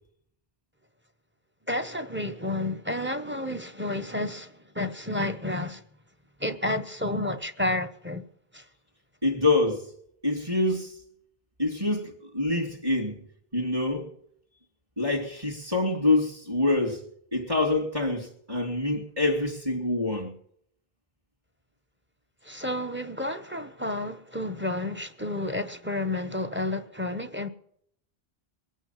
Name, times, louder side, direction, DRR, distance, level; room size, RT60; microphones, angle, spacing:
voice 1, 1.7-5.8 6.4-8.2 8.5-8.6 22.4-27.5, left 1 dB, 10° right, 0.9 m, -31 dB
voice 2, 9.2-9.9 10.2-11.0 11.6-13.2 13.5-14.1 15.0-17.0 17.3-20.3, left 2 dB, 35° right, 2.7 m, -26 dB
22.5 x 9.2 x 5.8 m
omnidirectional pair, 1.0 m